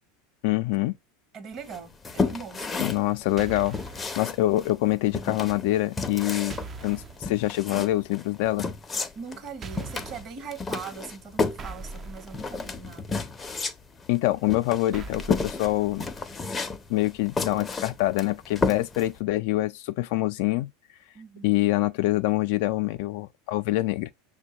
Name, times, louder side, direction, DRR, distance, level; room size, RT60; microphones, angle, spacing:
voice 1, 0.4-0.9 2.8-8.7 14.1-16.0 16.9-20.7 21.4-24.1, left 17 dB, 65° left, 0.4 m, -25 dB
voice 2, 1.3-3.0 9.1-13.2 21.1-21.6, right 5 dB, 45° right, 1.1 m, -41 dB
sound 1, 1.7-19.2, left 4 dB, 20° left, 0.6 m, -32 dB
sound 2, 3.4-4.1 6.5-7.2 9.6-10.3 11.6-13.0 14.9-16.3, right 4 dB, 30° right, 0.5 m, -41 dB
6.0 x 2.2 x 2.8 m
hypercardioid pair, 105°, 0 cm